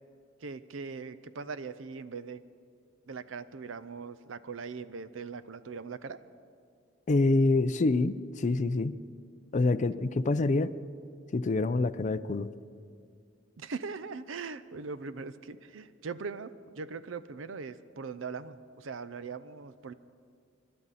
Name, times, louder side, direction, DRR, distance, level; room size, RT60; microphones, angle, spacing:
voice 1, 0.4-2.4 3.1-6.2 13.6-19.9, right 5 dB, 75° right, 14 dB, 0.6 m, -40 dB
voice 2, 7.1-8.9 9.5-10.7 11.3-12.5, left 2 dB, 40° left, 12 dB, 0.5 m, -26 dB
26.0 x 11.5 x 4.1 m, 2.2 s
head